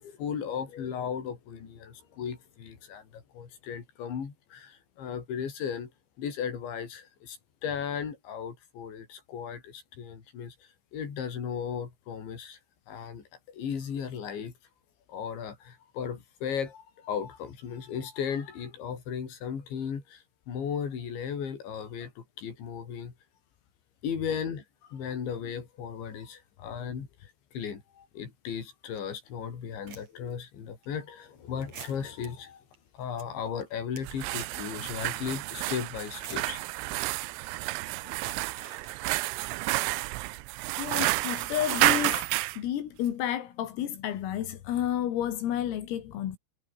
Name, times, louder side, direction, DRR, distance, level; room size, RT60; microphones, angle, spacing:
voice 1, 0.0-5.9 6.2-7.4 7.6-10.5 10.9-12.6 12.9-14.5 15.1-23.1 24.0-24.6 24.9-27.1 27.5-32.6 32.9-36.6 38.0-38.1, left 7 dB, 60° left, 6.8 m, -36 dB
sound 1, 28.9-29.0 29.7-30.3 30.8-31.0 31.6-32.3 32.7-32.8 33.0-33.2 33.6-34.7 34.9-35.0 36.0-36.5 38.1-39.2, right 6 dB, 35° right, 4.1 m, -45 dB
sound 2, 34.0-42.6, right 22 dB, 85° right, 3.4 m, -30 dB
voice 2, 40.8-42.2 42.6-46.4, left 11 dB, 85° left, 5.2 m, -31 dB
omnidirectional pair, 5.9 m